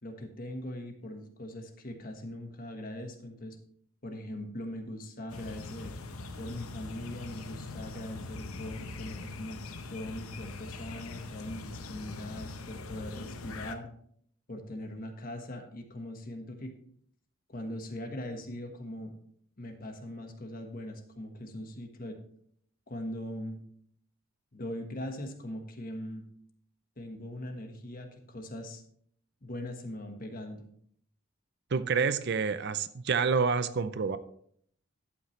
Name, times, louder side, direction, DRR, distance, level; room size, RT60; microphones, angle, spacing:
voice 1, 0.0-3.6 4.0-6.0 6.4-9.6 9.9-13.9 14.5-16.7 17.5-19.1 19.6-22.2 22.9-23.6 24.5-26.3 27.0-28.8 29.4-30.7, left 1 dB, 40° left, 5 dB, 1.4 m, -41 dB
sound 1, 5.3-13.8, left 3 dB, 85° left, 0.9 m, -42 dB
voice 2, 31.7-34.2, right 5 dB, 50° right, 13 dB, 0.5 m, -28 dB
11.5 x 8.6 x 3.2 m, 0.63 s
head